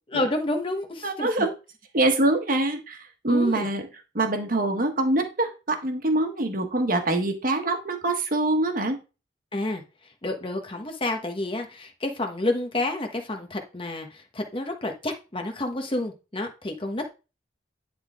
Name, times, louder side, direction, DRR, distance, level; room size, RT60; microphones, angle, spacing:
voice 1, 0.1-1.5 3.3-3.7 9.5-9.8 10.2-17.1, left 2 dB, 30° left, 4 dB, 1.2 m, -29 dB
voice 2, 1.0-1.5 1.9-3.0 3.2-3.9 4.1-9.0, right 2 dB, 50° right, 5 dB, 1.3 m, -24 dB
10.5 x 3.8 x 3.6 m, 0.30 s
head